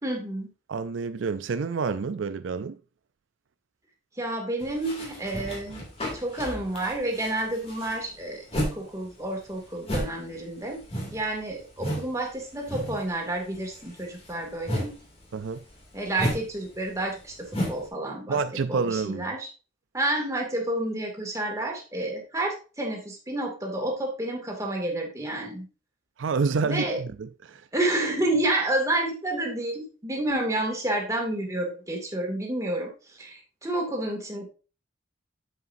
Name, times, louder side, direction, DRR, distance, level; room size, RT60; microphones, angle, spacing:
voice 1, 0.0-0.5 4.2-5.9 6.1-10.8 11.1-14.9 15.9-18.4 18.7-19.5 19.9-25.7 26.6-27.0 27.7-34.5, right 1 dB, 15° right, 2.3 m, -30 dB
voice 2, 0.7-2.8 15.3-15.6 18.3-19.3 26.2-27.7, right 5 dB, 85° right, 0.5 m, -28 dB
sound 1, 4.6-8.8 9.1-12.1 12.4-13.1 13.4-17.9, equal, 30° left, 2.6 m, -33 dB
8.1 x 7.5 x 2.7 m
head